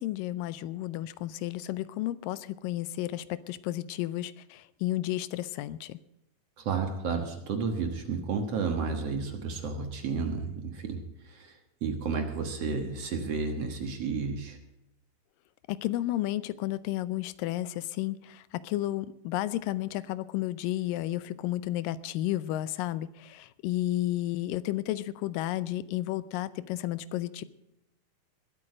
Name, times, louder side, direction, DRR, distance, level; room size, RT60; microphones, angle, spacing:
voice 1, 0.0-6.0 15.7-27.4, left 15 dB, 85° left, 16 dB, 2.3 m, -32 dB
voice 2, 6.6-14.6, right 5 dB, 55° right, 5 dB, 2.1 m, -32 dB
21.0 x 8.7 x 4.9 m, 0.86 s
omnidirectional pair, 3.9 m